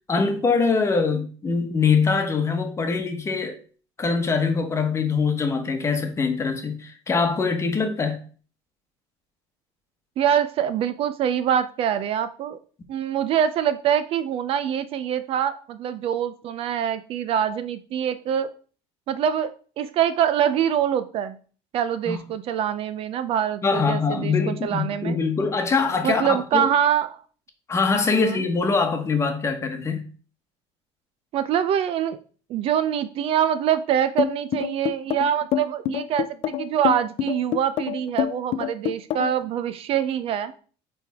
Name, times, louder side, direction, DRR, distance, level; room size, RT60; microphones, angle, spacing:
voice 1, 0.1-3.6 4.0-8.2 22.1-22.2 23.6-26.7 27.7-30.0, left 4 dB, 20° left, 1.1 m, -23 dB
voice 2, 10.2-12.6 12.9-18.5 19.1-21.4 21.7-25.2 26.0-27.2 28.1-28.4 31.3-32.2 32.5-40.5, right 9 dB, 50° right, 0.5 m, -24 dB
sound 1, 34.2-39.4, left 12 dB, 50° left, 0.4 m, -26 dB
9.1 x 3.4 x 3.5 m
cardioid pair, 135°, 13 cm